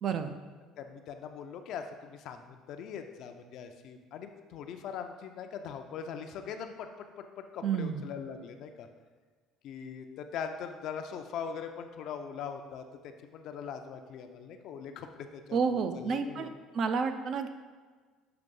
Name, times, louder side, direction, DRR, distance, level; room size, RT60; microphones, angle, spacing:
voice 1, 0.0-0.4 7.6-8.1 15.5-17.5, right 5 dB, 40° right, 8 dB, 0.4 m, -30 dB
voice 2, 0.8-8.9 9.6-16.5, left 7 dB, 55° left, 6 dB, 0.5 m, -41 dB
6.8 x 3.0 x 5.3 m, 1.4 s
cardioid pair, 160°, 0 cm